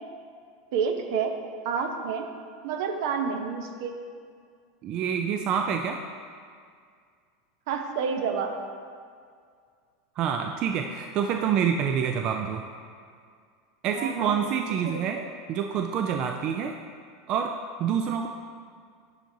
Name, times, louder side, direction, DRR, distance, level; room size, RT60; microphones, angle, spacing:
voice 1, 0.7-1.3 1.6-2.3 2.6-3.9 7.7-8.5 13.9-14.4 14.8-15.2, right 6 dB, 70° right, 5 dB, 0.7 m, -29 dB
voice 2, 4.8-6.0 10.2-12.6 13.8-15.2 15.5-16.8 17.3-18.3, right 7 dB, 45° right, 4 dB, 0.3 m, -27 dB
10.5 x 4.6 x 2.7 m, 2.1 s
supercardioid pair, 125°, 2 cm